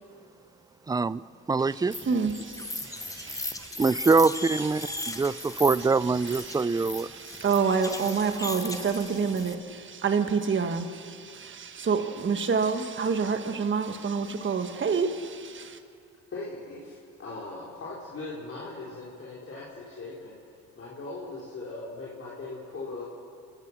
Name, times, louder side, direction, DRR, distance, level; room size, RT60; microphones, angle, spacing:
voice 1, 0.9-1.2 1.5-1.9 3.8-7.1, right 4 dB, 15° right, 18 dB, 0.4 m, -24 dB
voice 2, 1.7-3.8 4.6-15.8, right 5 dB, 40° right, 7 dB, 1.5 m, -29 dB
sound 1, 1.9-9.5, left 2 dB, 10° left, 0.9 m, -38 dB
voice 3, 16.3-20.4 20.7-23.0, left 3 dB, 45° left, -6 dB, 4.4 m, -39 dB
28.5 x 15.5 x 6.2 m, 2.3 s
cardioid pair, 90°, 30 cm